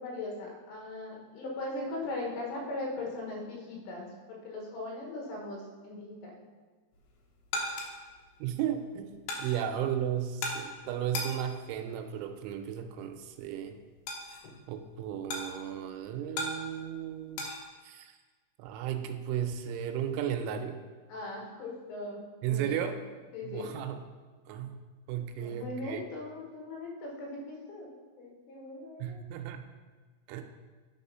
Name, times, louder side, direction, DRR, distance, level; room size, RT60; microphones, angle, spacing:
voice 1, 0.0-6.3 21.1-22.9 23.3-23.7 25.4-27.9 28.2-29.2, left 2 dB, 90° left, -1 dB, 4.0 m, -39 dB
sound 1, 6.9-17.6, left 2 dB, 70° left, 2.6 m, -41 dB
voice 2, 8.4-13.8 14.7-17.5 17.8-18.2 18.6-20.8 22.4-23.0 23.4-24.0 24.5-24.8 25.1-26.0 29.0-29.7 30.3-30.4, right 9 dB, 85° right, 6 dB, 2.9 m, -34 dB
9.4 x 4.3 x 5.5 m, 1.4 s
omnidirectional pair, 5.6 m